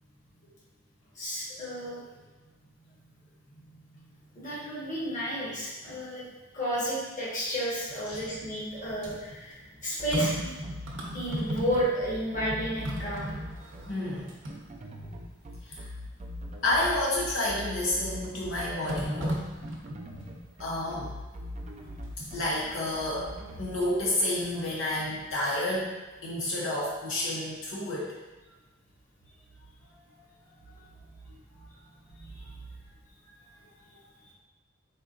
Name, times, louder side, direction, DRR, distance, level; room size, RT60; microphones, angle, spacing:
voice 1, 1.1-2.0 4.3-6.2 6.5-10.5 11.1-13.3 32.2-32.5, equal, 40° left, -7 dB, 1.2 m, -32 dB
sound 1, 7.8-12.1 12.4-15.2 15.7-15.8 17.4-17.9 18.9-20.4 22.0-22.4 23.3-24.1 24.5-25.5 25.7-25.8, equal, 70° right, 0.7 m, -37 dB
sound 2, 10.0-23.7, left 1 dB, 35° right, 0.4 m, -42 dB
voice 2, 13.9-14.3 15.6-15.9 16.6-19.4 20.6-21.1 22.3-25.9 26.2-28.1, left 1 dB, 85° left, -5 dB, 0.8 m, -30 dB
4.2 x 3.7 x 2.5 m, 1.2 s
head